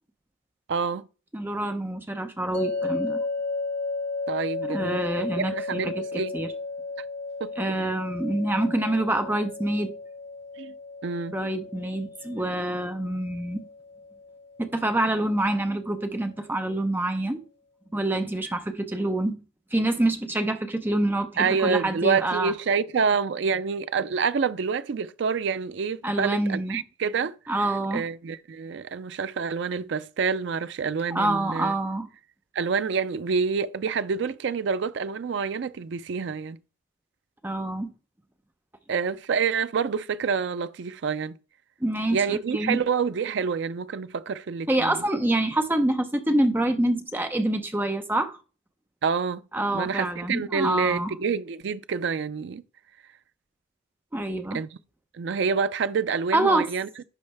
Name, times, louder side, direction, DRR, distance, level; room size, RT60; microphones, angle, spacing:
voice 1, 0.7-1.1 4.3-6.3 7.4-7.5 10.6-10.7 11.0-11.4 21.4-31.7 32.5-36.6 38.9-41.4 42.1-45.0 49.0-49.4 49.7-52.6 54.5-54.7 55.1-57.0, right 5 dB, 60° right, 0.4 m, -27 dB
voice 2, 1.3-3.2 4.6-6.0 6.3-6.5 7.6-9.9 11.3-13.6 14.6-17.4 17.9-19.4 19.7-22.5 26.0-26.8 27.5-28.0 31.1-32.1 37.4-37.9 41.8-42.8 44.7-48.4 49.5-51.1 54.1-54.6 56.3-56.7, right 1 dB, 10° right, 0.6 m, -26 dB
sound 1, 2.5-15.7, left 3 dB, 40° left, 3.5 m, -34 dB
11.0 x 3.9 x 3.4 m
head